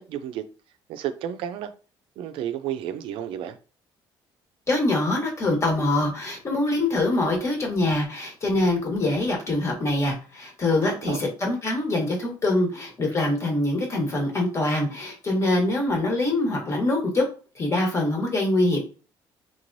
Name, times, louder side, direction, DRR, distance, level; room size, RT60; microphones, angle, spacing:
voice 1, 0.1-0.4 0.9-1.7 2.2-3.6 10.8-11.3, right 10 dB, 75° right, 0.4 m, -32 dB
voice 2, 4.7-17.2 17.5-18.8, left 2 dB, 30° left, 1.3 m, -24 dB
3.6 x 3.0 x 2.6 m
cardioid pair, 115°, 9 cm